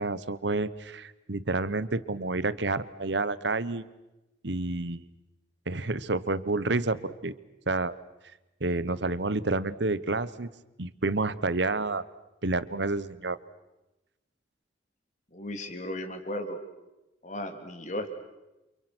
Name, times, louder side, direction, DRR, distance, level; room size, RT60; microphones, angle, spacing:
voice 1, 0.0-3.8 4.4-5.1 5.7-7.4 7.7-7.9 8.6-10.5 10.8-12.0 12.4-13.4, right 3 dB, 65° right, 16 dB, 1.2 m, -29 dB
voice 2, 15.3-16.6 17.2-18.1, left 1 dB, 40° left, 6 dB, 3.4 m, -35 dB
30.0 x 28.0 x 6.3 m, 1.0 s
head